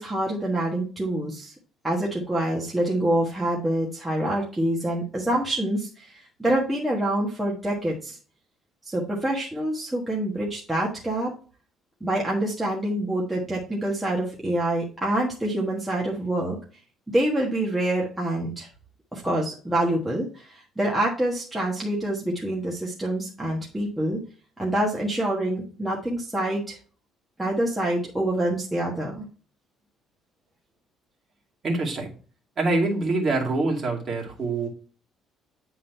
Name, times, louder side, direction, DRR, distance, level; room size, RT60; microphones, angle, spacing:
voice 1, 0.0-1.5 1.8-8.2 8.8-11.3 12.0-16.6 17.1-18.7 19.1-24.2 24.6-26.8 27.4-29.2, right 1 dB, 5° right, -4 dB, 1.4 m, -26 dB
voice 2, 31.6-32.1 32.6-34.7, right 2 dB, 30° right, -1 dB, 2.3 m, -25 dB
9.5 x 3.9 x 4.4 m, 0.38 s
cardioid pair, 160°, 0 cm